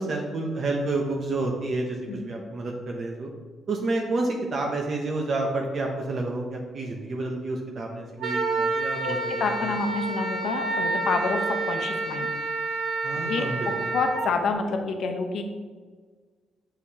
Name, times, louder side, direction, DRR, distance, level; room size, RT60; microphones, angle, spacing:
voice 1, 0.0-3.3 3.7-9.2 13.0-13.6, right 2 dB, 50° right, 1 dB, 0.8 m, -29 dB
Wind instrument woodwind instrument, 8.2-14.3, right 3 dB, 75° right, 1.1 m, -28 dB
voice 2, 9.0-12.3 13.2-15.4, left 4 dB, 65° left, 5 dB, 0.8 m, -28 dB
6.4 x 5.8 x 2.8 m, 1.5 s
cardioid pair, 90°, 0 cm